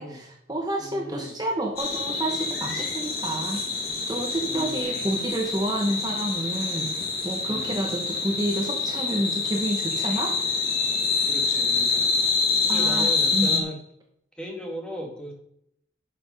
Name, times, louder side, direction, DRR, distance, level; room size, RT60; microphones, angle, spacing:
voice 1, 0.0-10.4 12.7-13.6, right 1 dB, 20° right, 2 dB, 1.0 m, -29 dB
voice 2, 0.8-1.3 4.4-5.0 7.5-7.9 11.3-11.9 12.6-13.8 14.4-15.3, equal, 5° left, 1 dB, 1.9 m, -37 dB
sound 1, 1.8-13.6, left 4 dB, 55° left, 1.9 m, -26 dB
11.0 x 6.0 x 5.3 m, 0.73 s
head